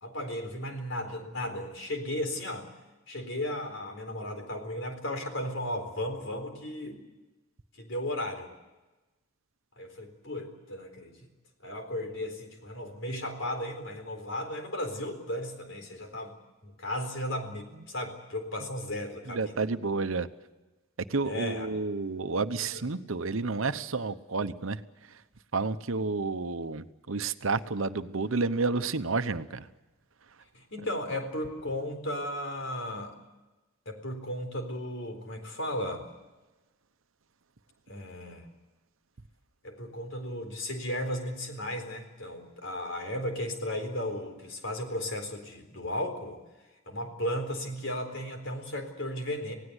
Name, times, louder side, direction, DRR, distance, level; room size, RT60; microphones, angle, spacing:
voice 1, 0.0-2.7 3.1-7.0 7.7-8.5 9.8-11.3 11.6-16.4 16.6-19.7 21.2-21.7 22.7-22.8 30.5-33.2 33.9-36.0 37.9-38.5 39.6-46.4 46.9-49.5, left 1 dB, 65° left, 5 dB, 4.1 m, -35 dB
voice 2, 19.3-20.3 21.1-24.8 25.5-29.7, right 3 dB, 75° right, 11 dB, 1.0 m, -30 dB
27.5 x 17.5 x 8.1 m, 1.1 s
head